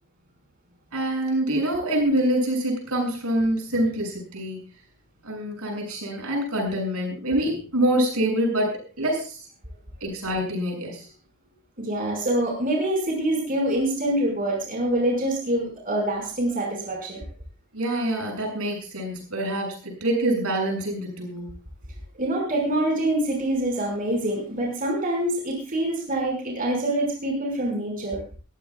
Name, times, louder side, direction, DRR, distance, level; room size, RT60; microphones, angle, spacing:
voice 1, 0.9-4.6 5.2-9.4 10.0-11.0 17.7-21.5, right 1 dB, 85° right, 1 dB, 7.6 m, -25 dB
voice 2, 11.8-17.3 22.2-28.2, right 1 dB, 40° right, 0 dB, 5.8 m, -25 dB
22.5 x 15.5 x 2.4 m, 0.37 s
head